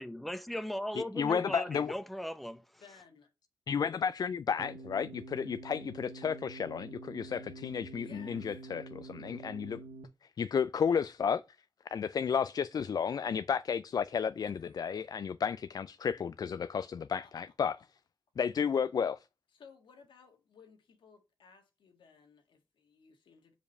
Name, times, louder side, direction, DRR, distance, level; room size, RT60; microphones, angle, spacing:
voice 1, 0.0-2.8, equal, ahead, 0.8 m, -38 dB
voice 2, 1.0-1.9 3.7-9.8 10.4-11.4 11.9-17.8 18.4-19.2, left 7 dB, 50° left, 0.3 m, -32 dB
voice 3, 2.8-3.3 7.9-8.6 14.5-15.1 17.1-17.3 19.5-23.6, left 5 dB, 75° left, 1.6 m, -59 dB
sound 1, 4.6-10.0, right 3 dB, 75° right, 0.8 m, -47 dB
5.1 x 4.9 x 5.3 m
cardioid pair, 50°, 8 cm